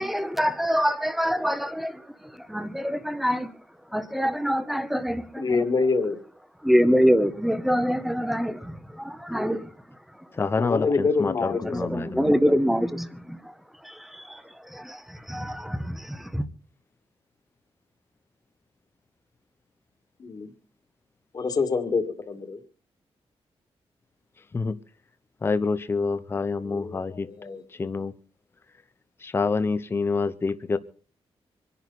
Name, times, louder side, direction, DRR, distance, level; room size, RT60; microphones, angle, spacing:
voice 1, 0.0-2.0 2.5-3.5 3.9-5.6 6.6-9.7 11.6-13.4 13.8-14.4 14.7-16.5, equal, ahead, 1.0 m, -25 dB
voice 2, 5.4-6.2 10.6-12.2 20.2-20.5 21.3-22.6 26.6-27.6, left 4 dB, 40° left, 2.1 m, -26 dB
voice 3, 10.4-12.3 24.5-24.8 25.4-27.3 27.8-28.1 29.2-30.8, left 4 dB, 25° left, 0.7 m, -27 dB
26.0 x 11.0 x 4.1 m
wide cardioid pair, 180°, 10 cm